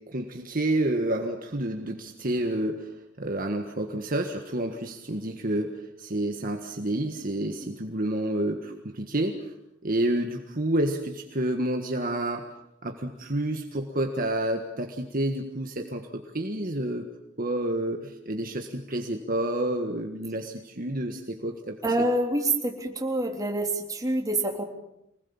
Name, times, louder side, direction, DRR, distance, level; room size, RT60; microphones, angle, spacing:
voice 1, 0.0-2.9 3.2-9.5 9.8-12.5 12.8-17.1 17.4-21.8, right 1 dB, 45° right, 4 dB, 1.7 m, -29 dB
voice 2, 21.8-24.6, right 1 dB, 20° right, 1 dB, 3.4 m, -26 dB
26.0 x 20.0 x 7.2 m, 0.83 s
head